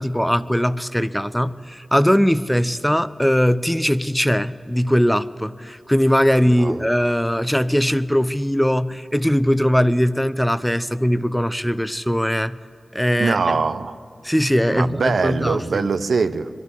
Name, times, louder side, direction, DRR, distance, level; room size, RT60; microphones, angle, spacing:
voice 1, 0.0-12.6 12.9-13.6 14.2-15.9, equal, 5° left, 14 dB, 0.6 m, -20 dB
voice 2, 6.5-6.8 13.2-14.0 14.7-16.5, right 4 dB, 85° right, 10 dB, 0.6 m, -22 dB
22.0 x 12.5 x 9.8 m, 2.1 s
cardioid pair, 50°, 0 cm